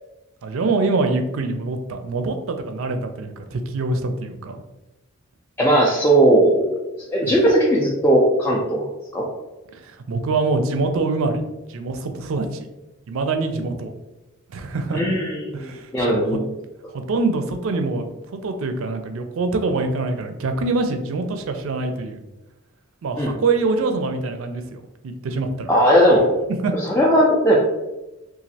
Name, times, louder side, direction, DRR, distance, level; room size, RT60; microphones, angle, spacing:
voice 1, 0.4-4.6 7.2-7.4 9.7-11.4 11.7-12.7 13.1-13.9 14.5-15.0 15.5-16.4 16.9-22.2 23.0-25.7 26.6-26.7, right 3 dB, 75° right, 6 dB, 0.4 m, -25 dB
voice 2, 5.6-6.8 7.1-8.9 9.1-9.3 14.9-16.4 23.2-23.3 25.7-26.3 26.9-27.6, right 1 dB, 10° left, -5 dB, 0.3 m, -17 dB
3.0 x 2.4 x 2.7 m, 1.0 s
head